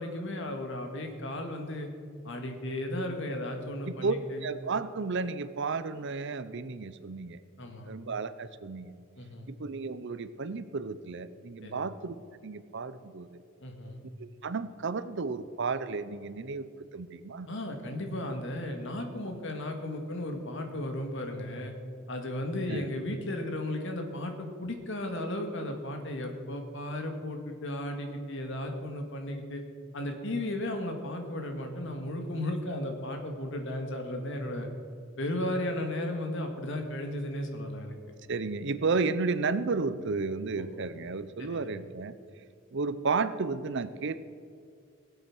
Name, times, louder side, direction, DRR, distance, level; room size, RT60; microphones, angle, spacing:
voice 1, 0.0-1.9 2.2-4.5 7.6-7.9 9.2-9.5 11.6-11.8 13.6-14.0 17.5-21.7 22.1-29.6 29.9-34.7 35.2-38.0 40.6-40.7 41.4-41.7, left 1 dB, 65° left, 4 dB, 2.0 m, -35 dB
voice 2, 4.4-7.4 7.8-8.9 9.5-13.4 14.2-17.5 22.7-22.9 38.3-42.1 42.7-44.2, right 4 dB, 60° right, 13 dB, 0.7 m, -33 dB
18.5 x 8.0 x 6.2 m, 2.3 s
head